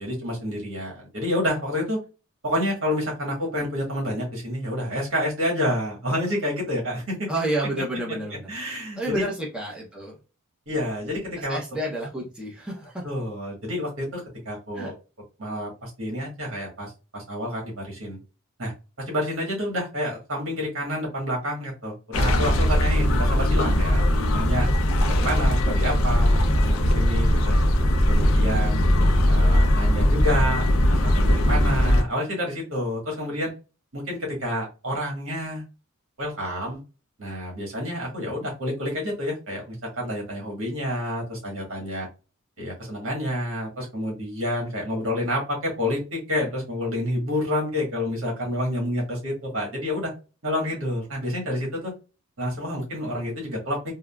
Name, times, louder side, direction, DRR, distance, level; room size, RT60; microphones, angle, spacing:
voice 1, 0.0-2.0 2.4-7.3 8.5-9.2 10.7-11.6 13.0-14.9 15.4-18.2 18.6-24.7 25.0-27.6 28.1-28.9 29.3-33.5 33.9-35.6 36.2-36.8 37.2-42.1 42.6-50.1 50.4-51.9 52.4-53.9, equal, 70° right, -1 dB, 1.4 m, -29 dB
voice 2, 7.3-8.5 9.0-10.2 11.4-13.1 14.7-14.9, right 1 dB, 5° right, -4 dB, 0.6 m, -30 dB
sound 1, 22.1-32.0, left 1 dB, 75° left, 0.5 m, -20 dB
3.6 x 2.0 x 2.3 m, 0.32 s
head